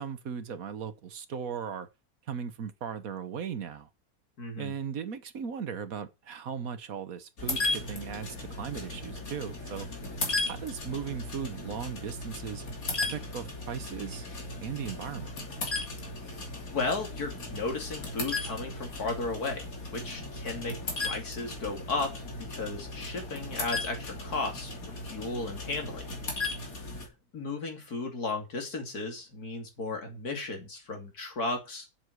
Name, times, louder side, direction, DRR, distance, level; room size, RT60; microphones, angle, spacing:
voice 1, 0.0-1.9 2.3-3.9 4.6-9.9 10.5-12.6 13.0-14.2 14.6-15.3, right 7 dB, 70° right, 1.6 m, -37 dB
voice 2, 4.4-4.7 16.7-26.1 27.0-31.9, left 3 dB, 85° left, 3.2 m, -35 dB
sound 1, 7.4-27.1, left 2 dB, 70° left, 3.4 m, -36 dB
7.8 x 7.5 x 8.0 m
omnidirectional pair, 1.6 m